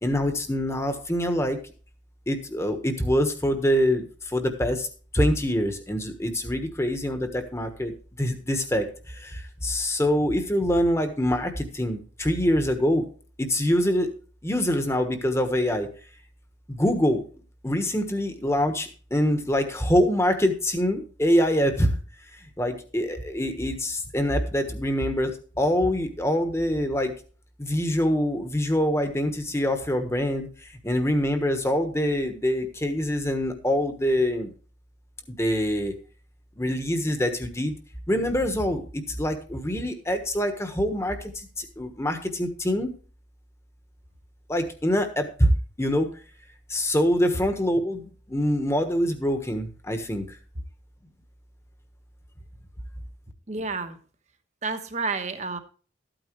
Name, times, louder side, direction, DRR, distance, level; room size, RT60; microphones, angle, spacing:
voice 1, 0.0-1.6 2.3-4.9 5.1-7.9 8.2-13.0 13.4-14.1 14.4-15.9 16.7-17.2 17.6-21.9 22.6-27.1 27.6-34.5 35.3-35.9 36.6-37.8 38.1-42.9 44.5-45.5 45.8-46.1 46.7-50.4, equal, 15° left, 7 dB, 1.3 m, -25 dB
voice 2, 53.5-54.0 54.6-55.6, right 4 dB, 40° right, 8 dB, 1.2 m, -30 dB
13.5 x 8.9 x 3.1 m, 0.39 s
head